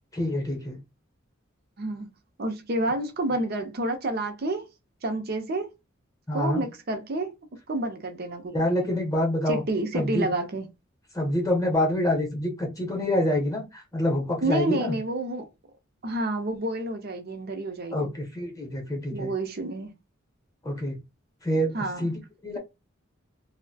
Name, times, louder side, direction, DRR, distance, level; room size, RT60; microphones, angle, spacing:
voice 1, 0.1-0.8 6.3-6.6 8.5-9.6 9.9-10.3 11.1-15.0 17.9-19.3 20.6-21.0 21.4-22.6, left 1 dB, 15° left, 0.8 m, -26 dB
voice 2, 1.8-2.1 2.4-4.7 5.0-5.7 6.3-7.3 7.7-8.9 9.5-10.7 14.4-15.5 16.0-18.1 19.1-19.9 21.7-22.1, right 2 dB, 50° right, 0.6 m, -29 dB
2.6 x 2.1 x 2.7 m
head